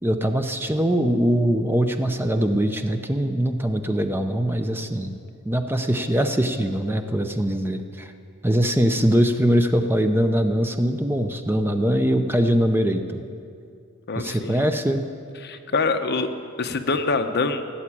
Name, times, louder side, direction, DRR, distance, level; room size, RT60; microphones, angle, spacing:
voice 1, 0.0-5.2 5.4-8.1 8.4-13.2 14.2-15.0, equal, 10° right, 6 dB, 0.6 m, -22 dB
voice 2, 14.1-14.6 15.4-16.3 16.6-17.6, left 3 dB, 55° left, 7 dB, 0.9 m, -25 dB
16.5 x 7.2 x 10.0 m, 2.4 s
head